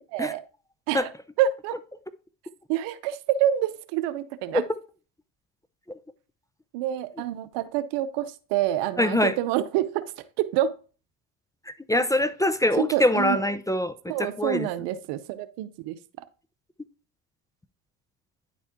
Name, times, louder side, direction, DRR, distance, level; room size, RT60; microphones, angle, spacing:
voice 1, 1.4-1.8 2.7-4.6 6.7-10.1 10.4-10.7 12.9-13.4 14.1-16.0, right 11 dB, 85° right, 0.8 m, -27 dB
voice 2, 9.0-9.3 11.9-14.7, left 1 dB, 10° left, 0.5 m, -24 dB
10.0 x 4.3 x 3.6 m
supercardioid pair, 85°, 41 cm